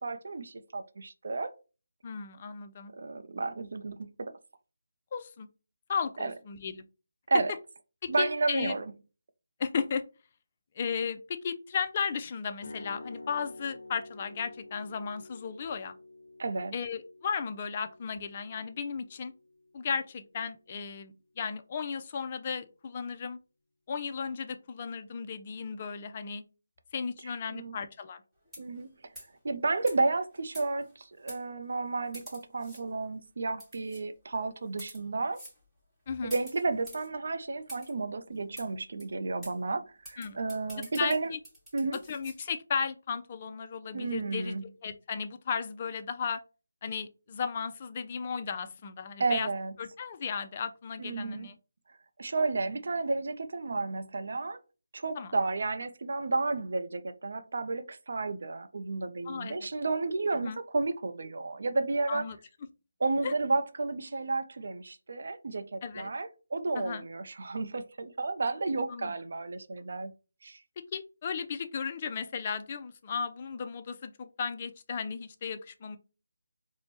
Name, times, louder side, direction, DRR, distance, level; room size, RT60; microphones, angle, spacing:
voice 1, 0.0-1.5 2.9-4.3 6.2-6.3 7.3-7.5 8.1-8.9 16.4-16.7 27.5-27.8 28.6-28.9 29.4-35.4 36.2-41.3 41.7-42.0 43.9-44.6 49.2-49.7 51.0-51.5 52.2-54.6 54.9-62.2 63.0-70.1 70.4-70.6, right 3 dB, 60° right, 0.5 m, -32 dB
voice 2, 2.0-2.9 5.1-5.5 5.9-6.8 8.0-8.7 9.6-10.0 10.8-16.0 16.7-19.3 19.7-23.4 23.9-26.4 26.9-28.2 36.1-36.3 40.2-40.4 40.8-41.4 42.1-46.4 46.8-49.5 49.8-51.5 55.1-55.3 59.2-59.7 60.4-60.6 62.1-62.4 63.2-63.3 65.8-66.1 66.8-67.0 68.9-69.1 70.9-76.0, left 6 dB, 30° left, 0.4 m, -35 dB
sound 1, 12.6-20.6, left 2 dB, 55° left, 0.8 m, -49 dB
sound 2, 28.4-28.8 29.1-29.4 29.9-30.0 30.5-30.9 31.3-31.4 32.1-32.8 33.6-34.0 34.7-35.0 35.3-35.6 36.3-37.1 37.7-37.9 38.6-38.7 39.0-39.1 39.4-39.5 40.0-42.4, equal, 5° right, 1.2 m, -47 dB
4.4 x 2.1 x 2.8 m
figure-of-eight pair, 160°, 0 cm